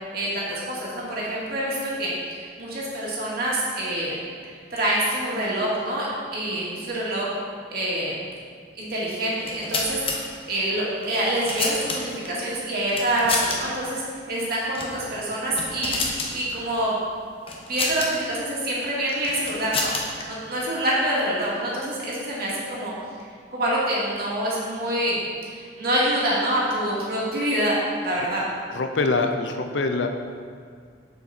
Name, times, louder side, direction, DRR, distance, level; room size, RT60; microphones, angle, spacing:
voice 1, 0.1-4.2 4.7-6.1 6.3-7.3 7.7-8.2 8.8-10.0 10.5-14.0 14.3-16.0 16.3-17.0 17.7-19.9 20.3-22.9 23.5-27.8 28.0-28.4, right 1 dB, 55° right, -6 dB, 2.1 m, -26 dB
sound 1, 9.3-10.2 11.0-12.3 12.9-13.6 13.8-14.0 14.7-15.0 15.3-16.3 17.5-18.1 19.1-20.2, left 3 dB, 30° left, 1.0 m, -28 dB
voice 2, 28.7-30.1, left 3 dB, 85° left, 6 dB, 0.6 m, -24 dB
7.1 x 6.9 x 4.2 m, 2.1 s
head